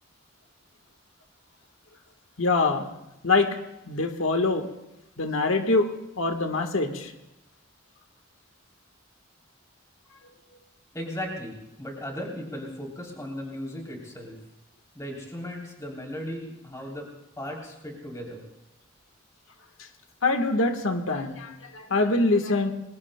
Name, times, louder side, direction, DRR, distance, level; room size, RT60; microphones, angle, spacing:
voice 1, 2.4-2.9 3.2-3.5 3.9-4.6 5.2-5.9 6.2-7.1 20.2-22.7, left 3 dB, 85° left, 6 dB, 1.4 m, -24 dB
voice 2, 10.9-14.4 14.9-17.1 17.4-18.4, equal, 15° left, -1 dB, 3.3 m, -36 dB
28.5 x 21.5 x 2.2 m, 0.94 s
head